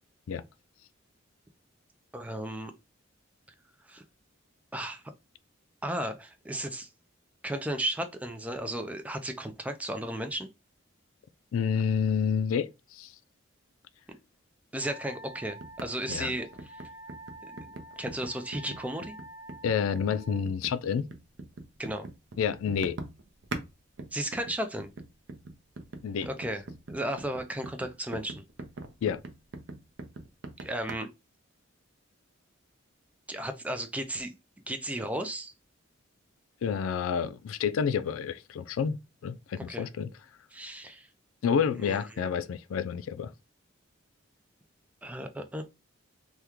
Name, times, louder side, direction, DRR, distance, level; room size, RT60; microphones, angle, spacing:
voice 1, 2.1-2.7 3.9-4.0 4.7-5.0 5.8-6.9 7.4-10.5 14.1-14.2 14.7-16.8 17.4-17.6 18.0-19.2 21.8-22.1 24.1-24.9 26.3-26.6 26.9-28.4 30.6-31.1 33.3-34.3 34.7-35.5 39.7-39.9 40.5-41.1 41.8-42.3 45.0-45.6, right 1 dB, 5° right, 0.3 m, -34 dB
voice 2, 11.5-13.1 16.1-16.3 19.6-21.1 22.4-23.0 26.0-26.3 29.0-29.2 36.6-40.1 41.4-43.3, left 7 dB, 85° left, 0.3 m, -29 dB
Wind instrument woodwind instrument, 14.8-20.4, equal, 45° left, 0.9 m, -48 dB
sound 1, 15.6-23.7 24.0-30.9, right 2 dB, 60° right, 0.5 m, -42 dB
3.5 x 2.2 x 2.9 m
head